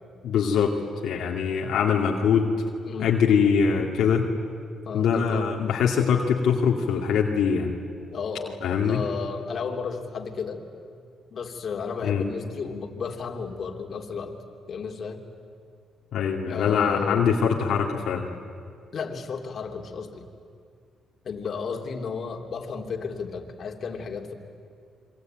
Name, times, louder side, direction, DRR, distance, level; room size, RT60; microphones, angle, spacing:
voice 1, 0.2-0.7 1.0-2.5 3.0-4.3 4.9-7.7 8.6-9.0 12.0-12.3 16.1-18.3, left 6 dB, 75° left, -1 dB, 2.3 m, -23 dB
voice 2, 4.8-5.5 8.1-8.6 8.9-10.6 11.3-14.4 14.7-15.2 16.5-17.2 18.9-20.3 21.2-24.3, left 5 dB, 50° left, 2 dB, 3.1 m, -33 dB
27.0 x 24.0 x 9.2 m, 2.3 s
cardioid pair, 90°, 0 cm